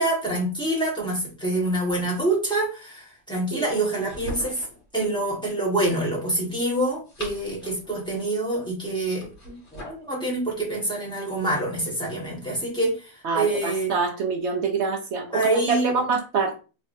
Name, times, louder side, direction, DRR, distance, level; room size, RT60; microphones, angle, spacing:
voice 1, 0.0-4.6 4.9-13.9 15.3-15.9, right 2 dB, 5° left, 1.3 m, -26 dB
sound 1, 3.8-4.8 6.8-7.9 9.2-10.1, equal, 45° left, 1.8 m, -40 dB
voice 2, 13.2-16.6, right 5 dB, 65° right, 0.7 m, -26 dB
3.4 x 3.1 x 2.6 m
omnidirectional pair, 1.7 m